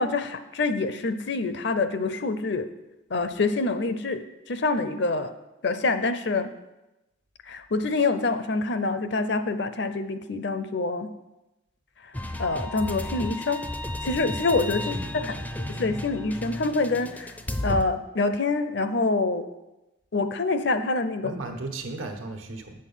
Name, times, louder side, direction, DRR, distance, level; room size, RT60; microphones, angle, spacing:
voice 1, 0.0-2.7 3.1-4.2 4.5-5.3 5.6-6.5 7.5-11.1 12.4-13.6 14.0-15.3 15.8-17.3 17.6-19.4 20.1-21.3, left 3 dB, 55° left, 10 dB, 0.6 m, -26 dB
sound 1, 12.1-17.8, left 1 dB, 10° left, 0.4 m, -33 dB
voice 2, 14.8-15.3 15.6-16.0 21.2-22.8, right 2 dB, 85° right, 4 dB, 1.3 m, -36 dB
8.5 x 6.4 x 5.7 m, 0.98 s
head